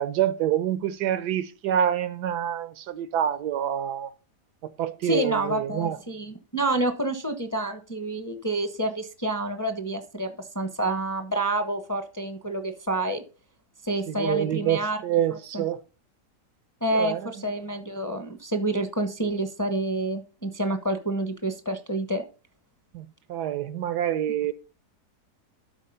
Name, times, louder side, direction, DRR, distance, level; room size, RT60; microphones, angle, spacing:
voice 1, 0.0-4.1 4.6-6.0 14.1-15.8 16.9-17.3 22.9-24.5, right 11 dB, 75° right, 1.3 m, -27 dB
voice 2, 5.0-13.2 13.8-15.0 15.3-15.6 16.8-22.2, right 1 dB, 15° left, 0.8 m, -28 dB
12.0 x 4.5 x 5.5 m
omnidirectional pair, 1.8 m